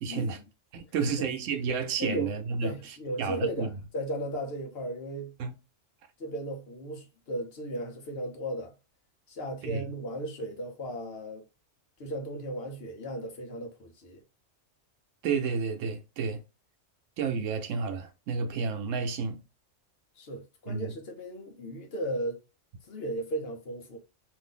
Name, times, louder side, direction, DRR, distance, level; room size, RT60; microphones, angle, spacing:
voice 1, 0.0-0.4 0.7-3.7 5.4-5.5 9.6-9.9 15.2-16.4 17.2-19.4 20.7-20.9, right 5 dB, 90° right, 1.0 m, -31 dB
voice 2, 0.9-1.3 2.0-2.3 2.6-5.3 6.2-8.7 9.3-11.4 12.0-14.2 20.2-22.4 22.9-24.0, right 1 dB, 60° left, 1.0 m, -36 dB
2.6 x 2.6 x 3.7 m
omnidirectional pair, 1.3 m